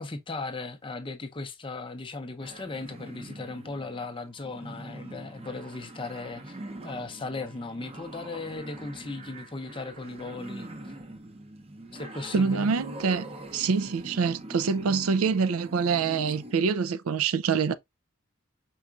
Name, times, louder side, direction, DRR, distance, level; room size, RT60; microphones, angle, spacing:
voice 1, 0.0-6.6 6.8-10.7 11.9-12.7, left 3 dB, 25° left, 0.6 m, -37 dB
sound 1, 2.4-16.5, right 1 dB, 30° right, 0.6 m, -44 dB
voice 2, 12.3-13.3 13.5-17.7, right 5 dB, 85° right, 0.4 m, -25 dB
4.7 x 4.2 x 2.3 m
head